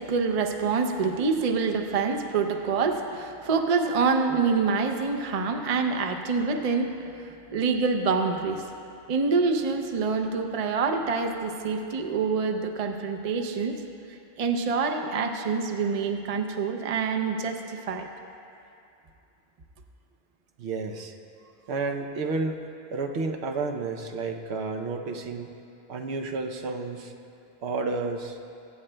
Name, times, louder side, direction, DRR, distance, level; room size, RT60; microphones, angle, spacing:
voice 1, 0.0-6.9 7.5-8.6 9.1-13.8 14.4-18.1, right 4 dB, 45° right, 4 dB, 0.6 m, -26 dB
voice 2, 20.6-21.1 21.7-22.6 22.9-25.5 25.9-27.1 27.6-28.4, right 3 dB, 90° right, 4 dB, 1.0 m, -31 dB
22.5 x 8.7 x 2.2 m, 2.6 s
omnidirectional pair, 1.1 m